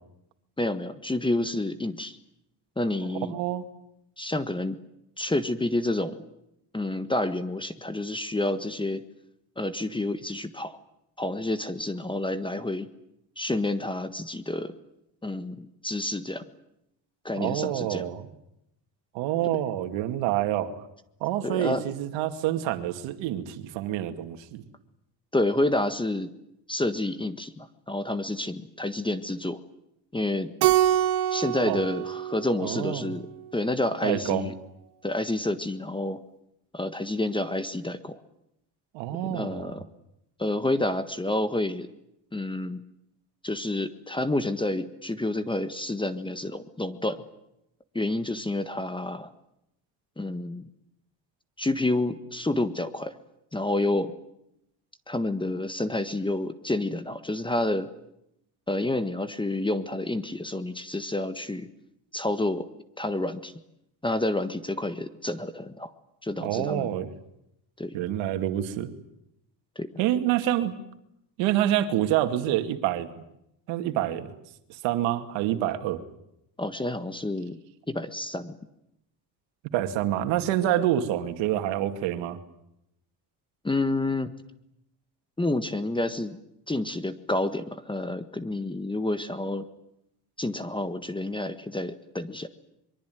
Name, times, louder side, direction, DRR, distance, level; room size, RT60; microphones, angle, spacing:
voice 1, 0.6-2.2 2.8-3.3 4.2-4.8 5.2-6.2 6.7-9.0 9.6-10.8 11.2-12.9 13.4-14.7 15.2-16.4 17.2-18.0 21.4-21.8 25.3-26.3 26.7-29.6 30.1-30.5 31.3-33.3 33.5-34.5 35.0-36.2 36.7-38.2 39.1-39.8 40.4-41.9 42.3-42.8 43.4-47.2 47.9-49.3 50.2-50.7 51.6-53.1 53.5-54.1 55.1-57.9 58.7-61.7 62.1-62.7 63.0-63.5 64.0-65.9 66.2-66.9 67.8-68.0 69.7-69.9 76.6-77.6 77.9-78.6 83.6-84.3 85.4-86.4 86.7-89.6 90.4-92.5, left 2 dB, 10° left, 11 dB, 1.5 m, -29 dB
voice 2, 3.3-3.7 17.4-18.3 19.1-20.7 21.2-24.6 31.7-31.8 32.6-33.1 34.0-34.5 38.9-39.8 66.4-67.1 67.9-68.9 70.0-70.7 71.4-73.1 73.7-74.3 74.7-76.0 79.7-82.4, right 12 dB, 90° right, 7 dB, 2.4 m, -27 dB
Keyboard (musical), 30.6-33.2, right 12 dB, 65° right, 1.7 m, -25 dB
24.0 x 23.5 x 9.3 m, 0.81 s
cardioid pair, 100°, 43 cm